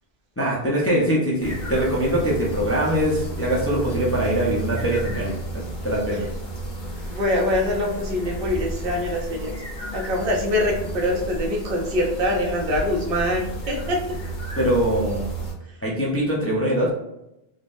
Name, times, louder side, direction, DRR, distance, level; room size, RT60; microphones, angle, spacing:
voice 1, 0.4-6.3 14.6-15.3 15.8-16.9, equal, 20° left, -5 dB, 0.4 m, -23 dB
sound 1, 1.4-15.5, right 2 dB, 55° left, 0.9 m, -32 dB
voice 2, 7.1-9.5 9.9-14.0, left 1 dB, 65° right, 0 dB, 0.8 m, -24 dB
3.6 x 2.0 x 2.5 m, 0.86 s
omnidirectional pair, 1.0 m